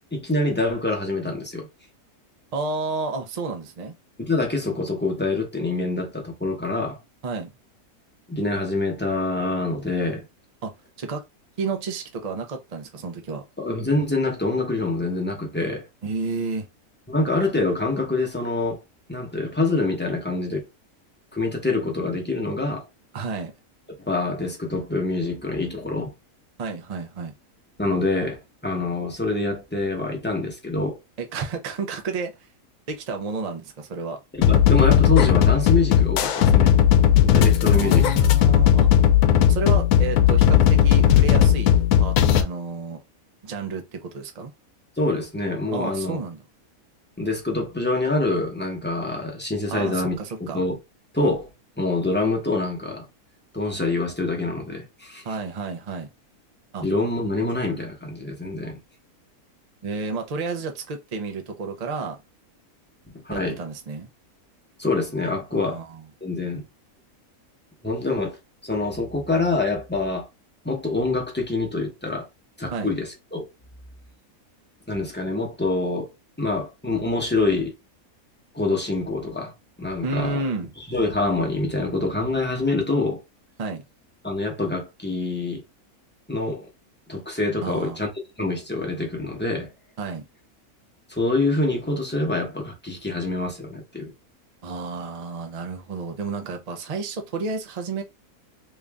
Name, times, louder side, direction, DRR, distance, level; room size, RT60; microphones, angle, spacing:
voice 1, 0.1-1.7 4.2-7.0 8.3-10.2 13.6-15.9 17.1-18.8 19.1-20.6 21.3-22.9 24.1-26.1 27.8-31.0 34.3-36.7 37.1-38.0 45.0-46.2 47.2-50.8 51.1-51.5 51.8-53.1 53.5-55.2 56.8-58.8 63.2-63.6 64.8-65.8 66.2-66.6 67.8-68.4 68.6-70.3 70.6-72.3 72.6-73.4 74.9-76.1 76.4-77.7 78.5-79.5 79.8-80.4 80.9-83.2 84.2-85.6 86.3-86.7 87.1-88.1 88.4-89.7 91.1-94.1, left 2 dB, 10° left, 0.8 m, -25 dB
voice 2, 2.5-3.9 7.2-7.5 10.6-11.2 11.6-13.4 16.0-16.7 23.1-23.5 26.6-27.3 31.2-32.3 32.9-34.2 37.7-38.9 39.5-43.0 43.4-44.5 45.7-46.4 49.7-50.6 55.2-56.1 56.7-56.9 59.8-62.2 63.3-64.1 65.5-66.0 72.7-72.9 80.0-80.7 83.6-83.8 87.6-88.0 90.0-90.2 94.6-98.0, right 4 dB, 50° right, 0.4 m, -31 dB
sound 1, 34.4-42.4, left 9 dB, 85° left, 1.1 m, -16 dB
3.1 x 2.5 x 3.4 m
omnidirectional pair, 1.6 m